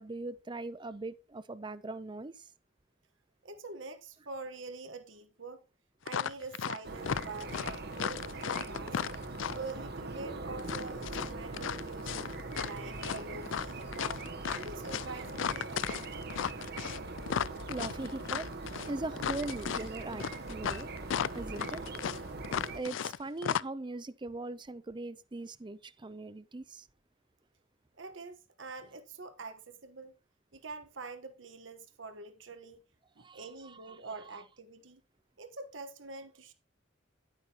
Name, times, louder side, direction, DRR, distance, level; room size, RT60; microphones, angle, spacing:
voice 1, 0.0-2.4 10.3-10.4 11.5-11.6 17.7-18.5 18.9-20.9 21.3-21.8 22.7-26.9 33.2-33.8, right 2 dB, 25° right, 0.6 m, -40 dB
voice 2, 3.4-5.6 6.0-9.0 9.5-12.3 12.6-16.3 28.0-30.1 30.5-32.8 33.2-35.0 35.4-36.5, right 3 dB, 85° right, 1.3 m, -45 dB
sound 1, 6.1-6.8 7.0-9.7 10.6-12.8 13.0-23.2 23.4-23.6, left 8 dB, 85° left, 0.4 m, -35 dB
sound 2, 6.8-22.8, right 3 dB, 55° right, 1.3 m, -41 dB
11.5 x 9.0 x 2.9 m
head